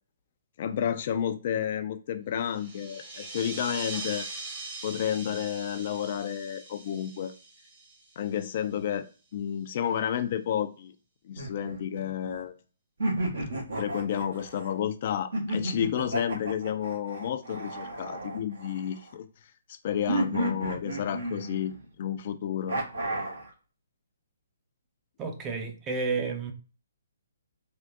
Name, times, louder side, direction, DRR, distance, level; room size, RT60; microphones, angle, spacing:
voice 1, 0.6-4.3 4.8-7.3 8.2-9.1 9.3-10.9 11.3-12.5 13.8-19.3 19.8-21.7 22.0-22.8, left 9 dB, 45° left, 0.3 m, -31 dB
sound 1, 2.4-8.6, right 3 dB, 35° right, 1.0 m, -41 dB
sound 2, 11.3-12.4 13.0-14.7 15.3-19.1 20.1-21.8 22.7-23.5, right 1 dB, 65° right, 1.1 m, -32 dB
voice 2, 25.2-26.5, right 4 dB, 20° right, 0.6 m, -31 dB
3.5 x 2.5 x 2.5 m
figure-of-eight pair, 130°, 0 cm